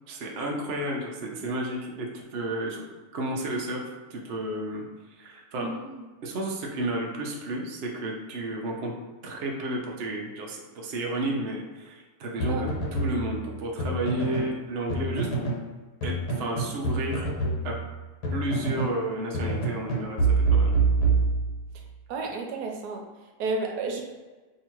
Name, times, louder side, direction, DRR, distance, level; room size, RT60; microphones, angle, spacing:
voice 1, 0.1-2.8 3.1-4.8 5.2-5.7 6.2-8.9 9.2-15.5 16.0-17.3 17.6-17.8 18.3-20.7, right 1 dB, 55° right, -1 dB, 0.7 m, -32 dB
voice 2, 5.5-6.0 12.5-12.7 21.7-21.8 22.1-23.0 23.4-24.0, right 3 dB, 80° right, 2 dB, 1.2 m, -32 dB
sound 1, 12.4-14.6 14.9-15.7 16.0-19.0 19.3-21.8, right 3 dB, 80° left, 1.5 m, -26 dB
2.9 x 2.8 x 4.4 m, 1.3 s
omnidirectional pair, 1.7 m